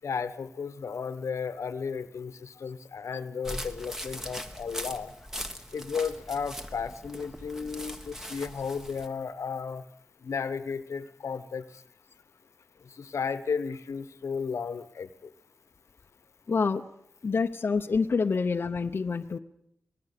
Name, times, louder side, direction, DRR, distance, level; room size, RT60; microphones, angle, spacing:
voice 1, 0.0-5.1 5.7-9.8 10.2-11.7 13.0-15.3, left 6 dB, 80° left, 12 dB, 1.1 m, -34 dB
sound 1, 3.4-9.1, equal, 10° right, 1.5 m, -40 dB
voice 2, 16.5-16.8 17.2-19.4, left 4 dB, 50° left, 6 dB, 0.8 m, -27 dB
25.0 x 19.0 x 6.8 m, 0.75 s
wide cardioid pair, 120°, 5 cm